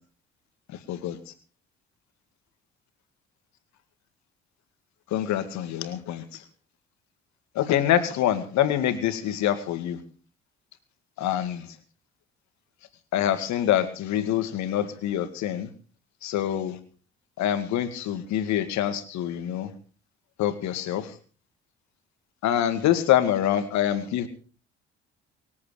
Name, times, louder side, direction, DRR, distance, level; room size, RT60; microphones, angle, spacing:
voice 1, 5.1-6.2 7.6-10.0 11.2-11.6 13.1-15.7 16.2-16.8 17.4-19.7 20.4-21.1 22.4-24.3, left 11 dB, 65° left, 10 dB, 2.1 m, -25 dB
25.0 x 8.6 x 5.0 m, 0.39 s
hypercardioid pair, 55°, 30 cm